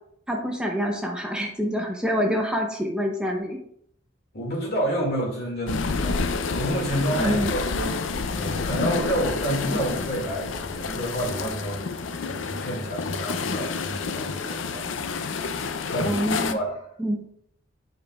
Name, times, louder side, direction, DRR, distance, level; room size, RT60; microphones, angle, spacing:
voice 1, 0.3-3.6 7.2-7.5 9.7-9.8 16.1-16.6 17.0-17.2, equal, 5° right, 1 dB, 0.6 m, -26 dB
voice 2, 4.3-8.0 8.2-11.9 12.1-15.5 15.9-16.2 16.5-16.8, right 1 dB, 55° left, -1 dB, 2.1 m, -29 dB
sound 1, 5.7-16.5, left 4 dB, 75° left, 0.5 m, -29 dB
7.8 x 5.1 x 2.3 m, 0.68 s
head